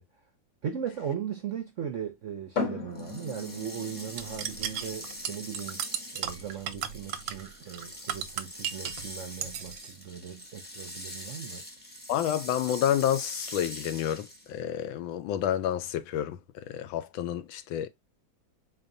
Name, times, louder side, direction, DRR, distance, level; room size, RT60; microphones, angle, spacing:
voice 1, 0.6-5.9 6.1-11.6, right 8 dB, 65° right, 0.7 m, -38 dB
sound 1, 2.5-16.0, left 4 dB, 50° left, 1.1 m, -43 dB
sound 2, 2.9-14.6, left 1 dB, 10° left, 0.5 m, -43 dB
sound 3, 4.2-9.1 9.4-9.9, right 10 dB, 85° right, 1.4 m, -35 dB
voice 2, 12.1-17.9, left 10 dB, 90° left, 1.4 m, -29 dB
4.1 x 3.3 x 2.6 m
omnidirectional pair, 2.1 m